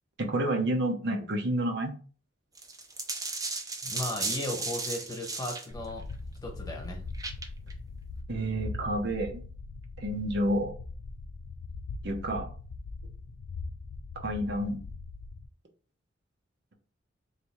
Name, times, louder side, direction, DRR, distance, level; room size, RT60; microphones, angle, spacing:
voice 1, 0.2-1.9 8.3-9.4 10.0-10.7 12.0-12.5 14.1-14.8, right 1 dB, 65° right, 2 dB, 0.8 m, -29 dB
sound 1, 2.6-5.7 7.1-7.7, right 3 dB, 20° right, 0.5 m, -35 dB
voice 2, 3.8-6.0 6.4-7.0, left 1 dB, 20° left, 1 dB, 1.2 m, -36 dB
sound 2, 5.7-15.5, left 3 dB, 70° left, 0.4 m, -41 dB
3.3 x 2.7 x 4.5 m, 0.39 s
head